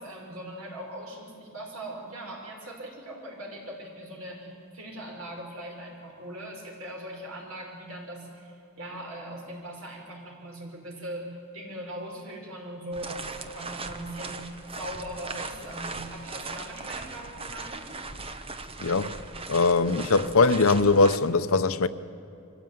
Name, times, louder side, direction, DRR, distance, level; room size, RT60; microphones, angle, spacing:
voice 1, 0.0-17.9, right 1 dB, 80° right, 5.4 m, -40 dB
sound 1, 12.9-21.2, right 3 dB, 25° right, 1.0 m, -39 dB
voice 2, 18.8-19.1 19.5-21.9, left 3 dB, 75° left, 0.8 m, -21 dB
24.5 x 15.0 x 9.1 m
head